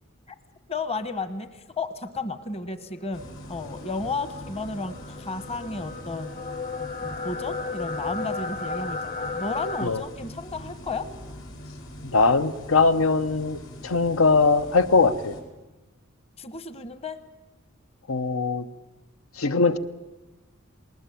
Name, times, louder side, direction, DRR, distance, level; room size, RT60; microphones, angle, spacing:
voice 1, 0.7-6.4 6.8-11.1 16.4-17.2, left 3 dB, 30° left, 11 dB, 1.0 m, -33 dB
sound 1, 3.0-9.9, left 3 dB, 45° left, 1.3 m, -34 dB
sound 2, 3.1-15.4, equal, 70° left, 4.4 m, -42 dB
voice 2, 12.0-15.3 18.1-18.6 19.4-19.8, left 4 dB, 90° left, 13 dB, 0.9 m, -21 dB
20.0 x 19.5 x 9.1 m, 1.1 s
head